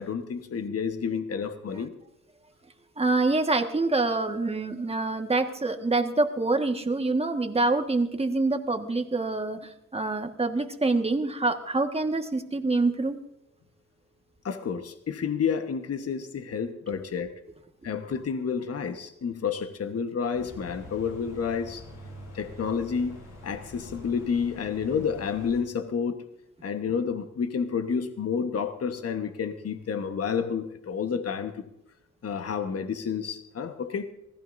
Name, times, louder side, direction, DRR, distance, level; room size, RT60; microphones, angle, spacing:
voice 1, 0.0-1.9 14.4-17.3 17.8-21.8 22.3-23.2 23.4-26.2 26.6-31.7 32.2-34.1, left 6 dB, 55° left, 8 dB, 1.3 m, -30 dB
voice 2, 3.0-13.2, right 3 dB, 20° right, 5 dB, 1.6 m, -26 dB
sound 1, 20.3-25.6, left 1 dB, 85° left, 7.1 m, -45 dB
25.5 x 16.0 x 2.7 m, 0.80 s
cardioid pair, 70°, 29 cm